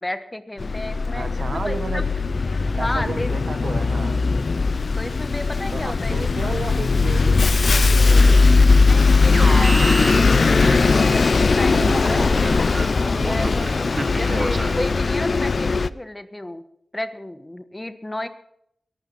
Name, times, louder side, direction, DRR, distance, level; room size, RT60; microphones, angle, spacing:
voice 1, 0.0-2.0 2.8-3.3 5.0-6.5 8.8-12.2 12.9-16.6 16.9-18.3, left 1 dB, 20° left, 10 dB, 1.2 m, -32 dB
Bus, 0.6-15.9, left 4 dB, 55° left, 0.5 m, -19 dB
voice 2, 1.1-2.1 2.7-4.2 5.7-8.6 13.9-14.5, right 4 dB, 75° right, 10 dB, 1.3 m, -33 dB
Alarm, 9.3-11.3 11.7-15.0, right 2 dB, 35° right, 1.3 m, -30 dB
22.5 x 12.0 x 4.1 m, 0.75 s
wide cardioid pair, 100°, 0 cm